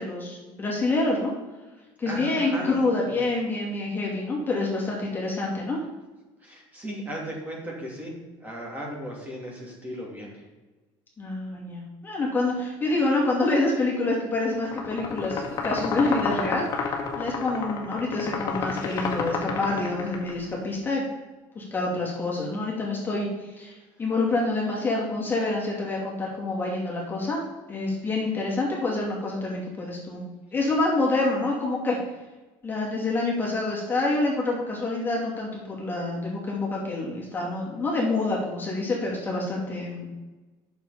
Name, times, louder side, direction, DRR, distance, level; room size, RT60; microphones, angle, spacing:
voice 1, 0.0-1.3 2.0-5.8 11.2-21.0 21.5-27.4 27.7-30.2 30.5-32.0 32.6-40.1, left 2 dB, 20° left, -3 dB, 2.7 m, -27 dB
voice 2, 2.0-2.8 3.0-3.1 6.4-8.1 8.4-10.4, equal, 15° right, -3 dB, 2.8 m, -36 dB
sound 1, 14.6-20.3, left 5 dB, 40° left, 1.8 m, -30 dB
8.6 x 6.9 x 5.1 m, 1.2 s
cardioid pair, 130°, 10 cm